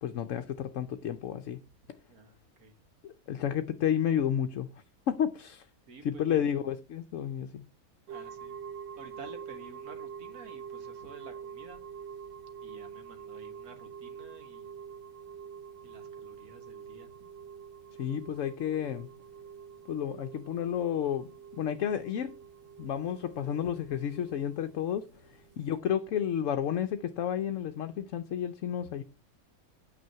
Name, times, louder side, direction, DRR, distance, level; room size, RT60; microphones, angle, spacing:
voice 1, 0.0-1.6 3.0-4.7 5.1-5.7 6.0-7.6 18.0-19.1 19.9-21.3 21.6-22.3 22.8-25.1 25.6-29.0, left 9 dB, 65° left, 1.0 m, -31 dB
voice 2, 2.1-2.8 5.9-6.4 8.1-8.6 9.0-11.8 12.6-14.7 15.8-17.3, right 4 dB, 80° right, 2.0 m, -51 dB
sound 1, 8.1-25.8, right 7 dB, 45° right, 1.2 m, -46 dB
9.4 x 6.2 x 5.6 m
omnidirectional pair, 1.5 m